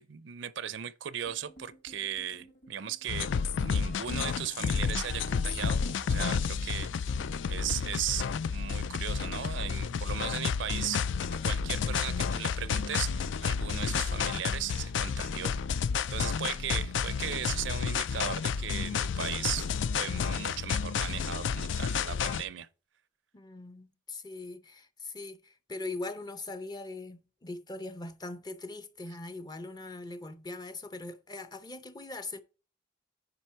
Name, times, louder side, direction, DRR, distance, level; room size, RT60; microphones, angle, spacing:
voice 1, 0.0-3.3 3.6-6.9 7.5-11.0 11.4-15.5 15.8-22.7, right 9 dB, 65° right, 0.5 m, -37 dB
sound 1, 1.2-8.0 8.3-9.9 10.9-11.2 11.5-11.8 13.4-13.6 14.0-14.2 15.8-15.9, equal, 50° left, 3.7 m, -52 dB
sound 2, 3.1-22.4, left 6 dB, 70° left, 0.4 m, -31 dB
voice 2, 23.3-32.4, left 2 dB, 20° left, 0.6 m, -41 dB
9.8 x 5.1 x 4.5 m
head